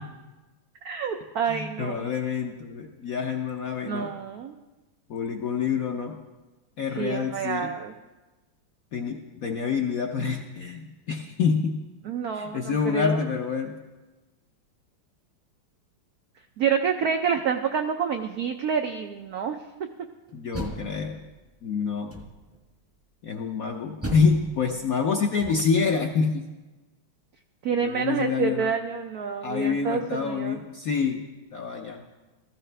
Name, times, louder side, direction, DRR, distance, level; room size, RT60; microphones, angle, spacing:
voice 1, 0.8-2.1 3.8-4.6 7.0-7.9 12.0-13.2 16.6-19.6 27.6-30.6, right 6 dB, 80° right, 5 dB, 0.8 m, -28 dB
voice 2, 1.5-4.1 5.1-6.2 6.8-7.7 8.9-11.8 12.3-13.8 20.3-21.2 21.6-22.1 23.2-26.5 27.8-28.7 29.4-31.2 31.5-32.0, left 5 dB, 65° left, 3 dB, 0.9 m, -27 dB
Door, 20.3-21.5 22.1-22.7 24.0-25.9, right 1 dB, 10° right, 0.6 m, -37 dB
16.0 x 14.5 x 3.3 m, 1.2 s
omnidirectional pair, 2.4 m